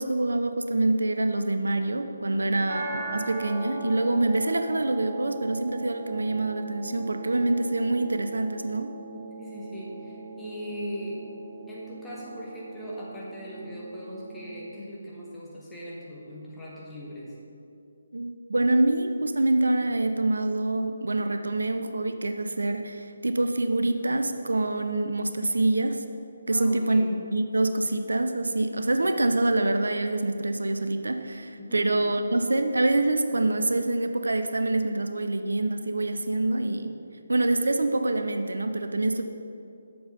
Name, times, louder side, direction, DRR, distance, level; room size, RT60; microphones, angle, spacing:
voice 1, 0.0-8.9 18.1-26.0 26.5-27.0 27.3-36.9 37.3-39.2, right 2 dB, 70° right, 7 dB, 0.5 m, -26 dB
voice 2, 2.3-2.7 9.4-11.2 11.7-17.3 26.5-27.1 31.6-31.9, equal, 5° left, -8 dB, 1.8 m, -39 dB
sound 1, 2.7-14.7, right 3 dB, 30° right, 1.6 m, -40 dB
7.7 x 6.8 x 5.7 m, 2.6 s
figure-of-eight pair, 150°, 0 cm